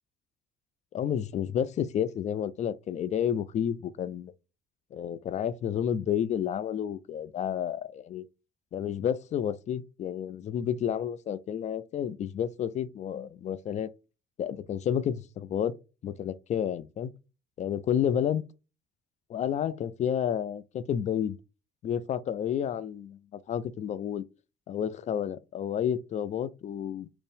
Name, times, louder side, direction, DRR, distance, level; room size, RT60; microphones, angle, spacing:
voice 1, 0.9-4.3 4.9-8.2 8.7-13.9 14.4-15.7 16.0-17.1 17.6-18.4 19.3-21.4 21.8-24.2 24.7-27.2, left 9 dB, 45° left, 0.4 m, -30 dB
4.4 x 2.0 x 3.3 m
cardioid pair, 110°, 17 cm